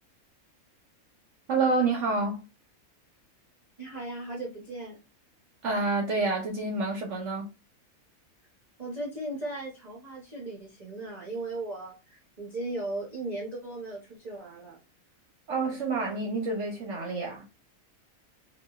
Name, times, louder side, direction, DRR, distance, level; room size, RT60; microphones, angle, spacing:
voice 1, 1.5-2.4 5.6-7.5 15.5-17.4, right 3 dB, 65° right, 0.9 m, -28 dB
voice 2, 3.8-5.0 8.8-14.8, right 2 dB, 40° right, 0.7 m, -37 dB
4.0 x 2.4 x 2.3 m
omnidirectional pair, 1.5 m